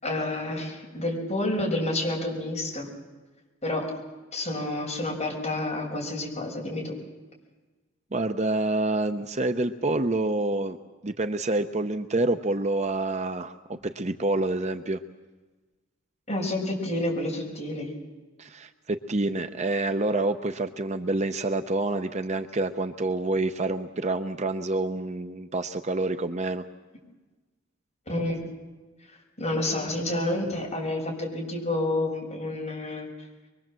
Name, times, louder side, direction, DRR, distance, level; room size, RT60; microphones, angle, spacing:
voice 1, 0.0-2.9 3.6-3.9 4.3-6.9 16.3-17.9 28.1-28.4 29.4-33.1, left 1 dB, 30° left, -1 dB, 6.1 m, -29 dB
voice 2, 8.1-10.8 11.0-15.0 18.4-26.6, right 2 dB, 35° right, 8 dB, 0.7 m, -27 dB
24.0 x 23.0 x 7.6 m, 1.2 s
head